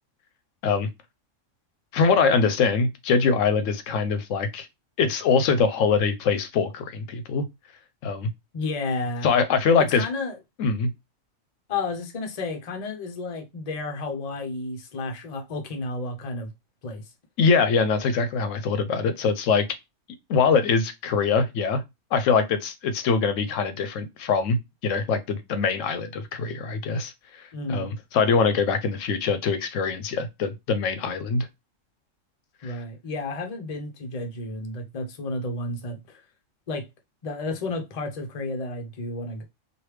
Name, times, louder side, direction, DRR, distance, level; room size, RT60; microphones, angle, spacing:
voice 1, 1.9-4.7 5.0-7.4 8.0-8.3 9.2-10.1 10.6-10.9 17.4-19.7 20.3-21.8 22.1-31.5 32.6-32.7, left 5 dB, 75° left, 0.9 m, -23 dB
voice 2, 8.5-9.3 9.8-10.4 11.7-16.5 16.8-17.0 27.5-27.9 32.6-36.2 36.7-36.9 37.2-39.4, left 2 dB, 40° left, 0.6 m, -32 dB
3.1 x 2.5 x 3.1 m
omnidirectional pair, 1.3 m